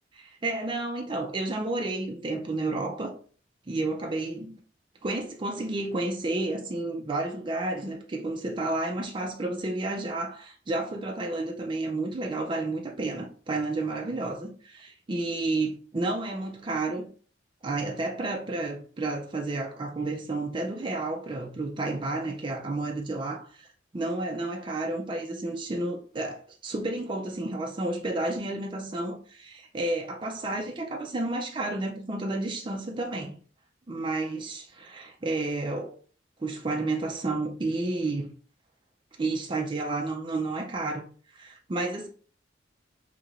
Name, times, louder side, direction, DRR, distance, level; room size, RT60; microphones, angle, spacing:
voice 1, 0.1-3.1 3.7-4.5 5.0-17.1 17.6-23.7 23.9-33.4 33.9-35.9 36.4-38.3 39.2-41.0 41.3-42.1, right 2 dB, 25° right, 0.4 m, -31 dB
3.1 x 2.8 x 2.4 m
head